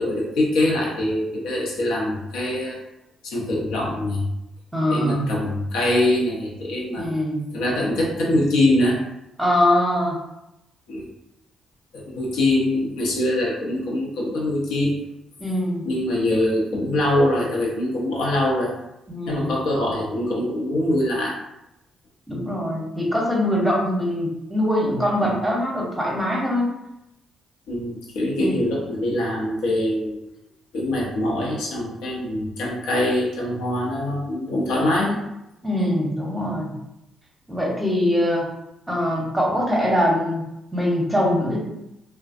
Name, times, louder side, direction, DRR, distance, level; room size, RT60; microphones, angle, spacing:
voice 1, 0.0-2.8 3.2-4.2 4.9-7.2 7.5-9.0 10.9-11.1 11.9-14.9 15.9-18.7 19.3-21.3 25.2-25.5 27.7-30.2 30.7-35.2, left 1 dB, 90° left, -2 dB, 0.7 m, -23 dB
voice 2, 4.7-5.3 7.0-7.5 9.4-10.2 15.4-15.8 19.1-19.5 22.3-26.7 28.4-28.6 35.6-36.7 37.5-38.5 38.9-41.6, left 1 dB, 5° right, -3 dB, 0.7 m, -23 dB
2.5 x 2.1 x 2.5 m, 0.86 s
cardioid pair, 90°, 0 cm